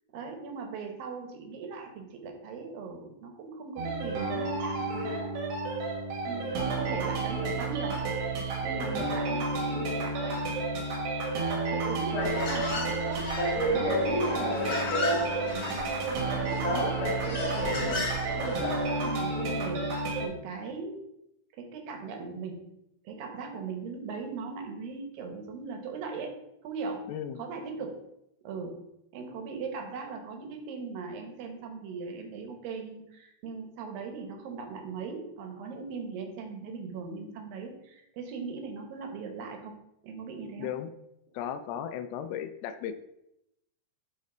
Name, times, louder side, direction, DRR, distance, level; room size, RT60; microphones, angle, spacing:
voice 1, 0.1-5.3 6.2-8.0 8.3-10.4 11.7-13.3 13.6-16.9 17.3-19.9 20.2-21.1 21.6-22.7 23.0-26.3 26.6-27.1 27.4-28.1 28.4-28.8 29.1-39.8 40.0-40.8, right 4 dB, 70° right, 3 dB, 2.7 m, -39 dB
sound 1, 3.8-20.3, right 3 dB, 90° right, 3.7 m, -31 dB
voice 2, 8.8-9.2 17.7-18.1 27.1-27.4 40.6-40.9 41.3-42.9, left 9 dB, 85° left, 9 dB, 2.5 m, -36 dB
Human voice, 12.1-19.2, left 1 dB, 65° left, 1.0 m, -31 dB
10.5 x 4.2 x 3.9 m, 0.82 s
omnidirectional pair, 4.5 m